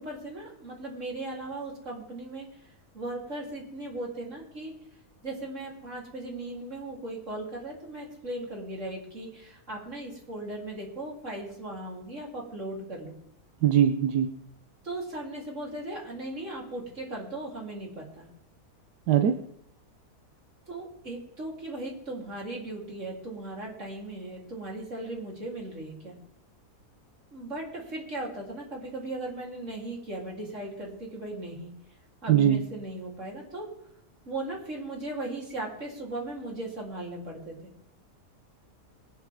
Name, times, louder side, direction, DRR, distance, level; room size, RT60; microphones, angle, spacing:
voice 1, 0.0-4.7 5.2-13.1 14.8-18.3 20.7-26.2 27.3-31.7 32.2-33.7 34.3-37.5, right 2 dB, 50° right, -2 dB, 4.1 m, -37 dB
voice 2, 13.6-14.3 19.1-19.4 32.3-32.6, right 10 dB, 90° right, 8 dB, 1.4 m, -21 dB
22.5 x 10.5 x 3.7 m, 0.73 s
omnidirectional pair, 1.7 m